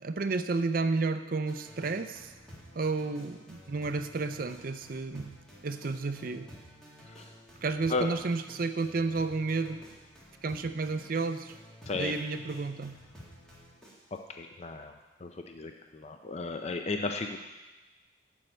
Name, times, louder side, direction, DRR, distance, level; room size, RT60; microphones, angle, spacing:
voice 1, 0.0-2.3 2.7-5.4 5.6-6.5 7.6-9.8 10.4-11.5 11.9-13.0, right 3 dB, 45° right, 9 dB, 0.5 m, -31 dB
sound 1, 1.4-14.2, equal, 5° left, 1.9 m, -52 dB
voice 2, 14.1-14.9 15.2-17.4, left 3 dB, 35° left, 5 dB, 0.4 m, -34 dB
7.5 x 6.4 x 7.9 m, 1.2 s
head